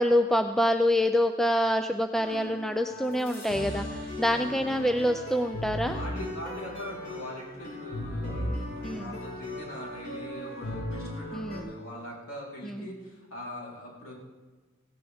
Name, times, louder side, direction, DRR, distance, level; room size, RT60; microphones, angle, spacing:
voice 1, 0.0-6.0 8.8-9.1 11.3-11.6 12.6-12.9, equal, ahead, 7 dB, 0.3 m, -26 dB
sound 1, 2.1-11.6, left 1 dB, 55° left, 5.1 m, -37 dB
voice 2, 4.2-4.6 5.9-14.1, equal, 70° left, -4 dB, 3.6 m, -42 dB
17.5 x 16.5 x 3.5 m, 1.3 s
head